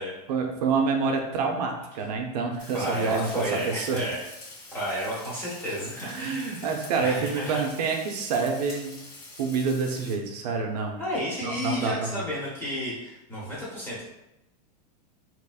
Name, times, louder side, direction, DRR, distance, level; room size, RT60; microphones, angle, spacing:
voice 1, 0.3-4.0 6.0-9.0 9.4-11.0 11.4-12.2, right 5 dB, 70° right, 2 dB, 0.6 m, -27 dB
Frying (food), 2.6-10.1, left 2 dB, 50° left, 1.4 m, -45 dB
voice 2, 2.7-4.2 4.7-6.7 7.0-7.7 11.0-14.0, equal, 10° left, -7 dB, 1.0 m, -32 dB
3.4 x 3.0 x 2.4 m, 0.92 s
supercardioid pair, 160°, 21 cm